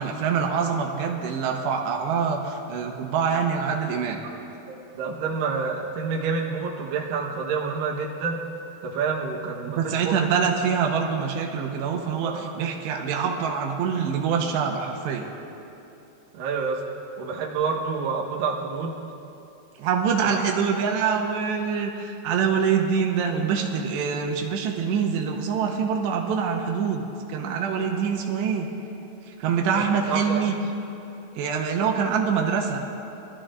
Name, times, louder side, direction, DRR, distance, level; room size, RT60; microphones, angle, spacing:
voice 1, 0.0-4.2 9.8-15.3 19.8-27.0 27.3-28.7 29.4-30.6 31.4-32.8, right 6 dB, 90° right, 1 dB, 3.2 m, -25 dB
voice 2, 4.2-8.4 8.8-10.3 12.2-12.5 16.3-16.8 17.2-19.0 20.2-20.4 29.7-30.4, right 5 dB, 65° right, -1 dB, 2.5 m, -28 dB
24.0 x 14.0 x 2.5 m, 2.9 s
omnidirectional pair, 4.9 m